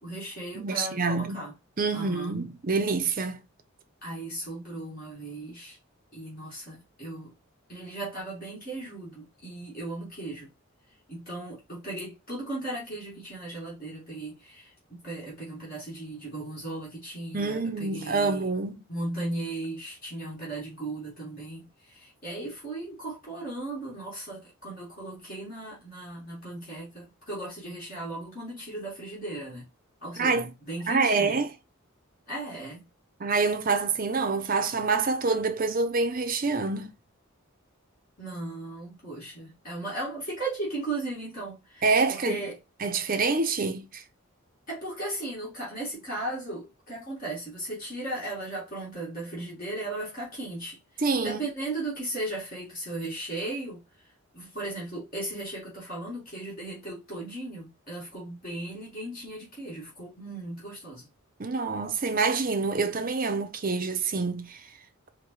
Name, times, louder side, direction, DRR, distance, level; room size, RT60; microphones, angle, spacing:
voice 1, 0.0-1.5 1.9-2.4 4.0-5.8 6.1-7.3 7.7-10.5 11.1-18.5 18.9-29.7 30.0-31.4 32.3-32.9 38.2-42.6 44.7-61.1, right 2 dB, 40° left, 1.8 m, -37 dB
voice 2, 0.5-1.4 1.8-3.4 17.3-18.8 30.2-30.5 30.9-31.5 33.2-36.9 41.8-42.4 42.8-44.0 51.0-51.4 61.4-64.6, right 4 dB, 40° right, 0.6 m, -26 dB
4.6 x 2.2 x 3.1 m
head